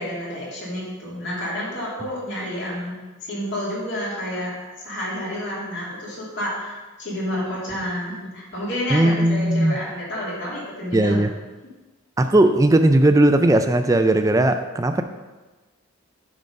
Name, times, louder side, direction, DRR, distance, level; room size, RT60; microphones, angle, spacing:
voice 1, 0.0-11.2, left 1 dB, 55° left, -6 dB, 2.6 m, -30 dB
voice 2, 8.9-9.8 10.9-11.3 12.2-15.0, right 1 dB, 15° right, 8 dB, 0.3 m, -17 dB
9.2 x 3.9 x 5.3 m, 1.2 s
head